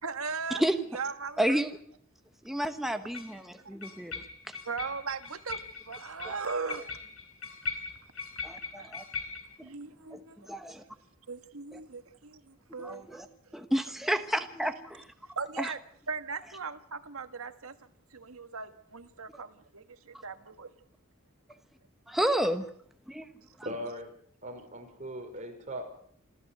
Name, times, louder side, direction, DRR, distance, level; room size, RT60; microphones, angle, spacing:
voice 1, 0.0-0.6 0.9-1.5 4.6-6.9 8.8-8.9 9.6-10.4 11.3-13.2 15.3-15.8 16.1-17.8 18.1-20.7, right 5 dB, 85° right, 1.6 m, -38 dB
sound 1, 1.0-1.1 3.1-3.4 3.8-9.6, left 5 dB, 80° left, 3.5 m, -40 dB
voice 2, 1.4-1.8 2.4-4.1 4.5-4.6 6.2-6.4 8.4-9.0 10.1-10.2 10.5-10.8 11.7-11.8 12.8-13.3 13.5-15.1 15.6-15.7 22.1-22.7 23.1-23.3, equal, ahead, 1.1 m, -30 dB
voice 3, 23.6-24.1 24.4-25.8, equal, 35° right, 5.3 m, -39 dB
27.0 x 14.0 x 7.9 m
head